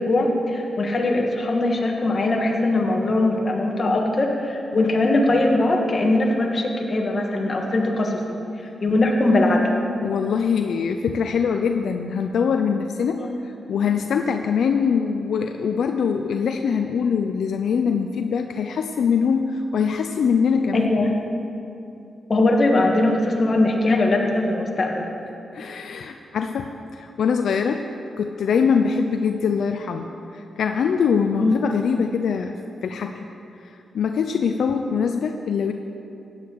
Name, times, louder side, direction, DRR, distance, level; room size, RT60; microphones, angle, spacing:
voice 1, 0.0-8.4 8.8-9.7 13.2-13.3 20.7-21.1 22.3-25.1 31.4-31.6, left 2 dB, 40° left, 0 dB, 1.9 m, -21 dB
voice 2, 10.0-20.9 25.5-27.9 28.2-30.1 30.3-33.3 33.6-35.7, left 6 dB, 80° left, 5 dB, 0.5 m, -23 dB
16.0 x 9.8 x 4.7 m, 2.7 s
cardioid pair, 100°, 0 cm